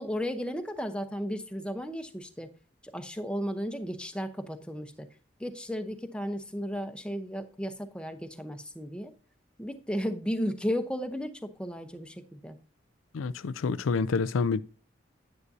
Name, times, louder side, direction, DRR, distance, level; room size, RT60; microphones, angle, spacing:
voice 1, 0.0-2.5 2.8-5.1 5.4-9.1 9.6-12.6, equal, 5° left, 0.8 m, -34 dB
voice 2, 13.1-14.6, left 4 dB, 85° left, 0.4 m, -28 dB
9.7 x 9.4 x 2.7 m
head